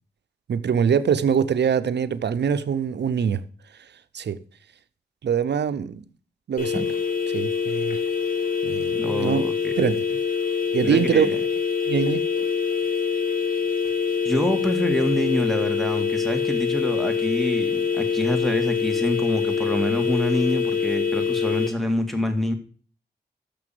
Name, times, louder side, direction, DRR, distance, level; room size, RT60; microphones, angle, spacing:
voice 1, 0.5-3.4 4.1-4.4 5.2-6.0 6.5-6.9 7.3-8.0 8.6-9.4 9.8-10.2 10.7-11.4 11.9-12.3, right 7 dB, 85° right, 0.6 m, -23 dB
sound 1, 6.6-21.7, left 6 dB, 55° left, 2.5 m, -25 dB
voice 2, 9.0-9.8 10.8-11.3 14.2-22.5, left 1 dB, ahead, 1.9 m, -26 dB
6.9 x 6.0 x 7.5 m
cardioid pair, 50°, 17 cm